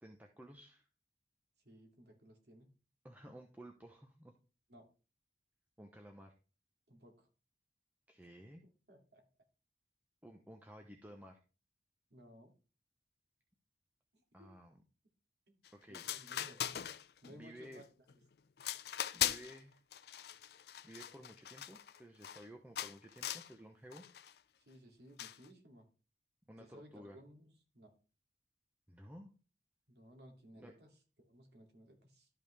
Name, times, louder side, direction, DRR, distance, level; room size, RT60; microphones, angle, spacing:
voice 1, 0.0-0.9 3.0-4.4 5.8-6.4 8.1-8.6 10.2-11.4 14.3-14.8 15.7-16.5 17.3-17.8 19.1-19.8 20.8-24.0 26.5-27.2 28.9-29.3 30.6-30.7, equal, 10° right, 3 dB, 0.8 m, -54 dB
voice 2, 1.6-2.8 4.7-4.9 6.9-7.3 8.9-9.3 12.1-12.5 14.1-14.5 15.5-15.6 15.9-16.8 17.2-17.8 24.6-25.9 26.6-28.0 29.9-32.3, equal, 75° right, 2 dB, 2.6 m, -59 dB
sound 1, 15.6-15.7 15.9-17.3 17.7-18.1 18.6-19.6 19.9-22.4 22.8-23.5 23.9-24.3 25.2-25.5, left 11 dB, 65° left, 0.4 m, -40 dB
12.5 x 5.4 x 3.4 m, 0.34 s
head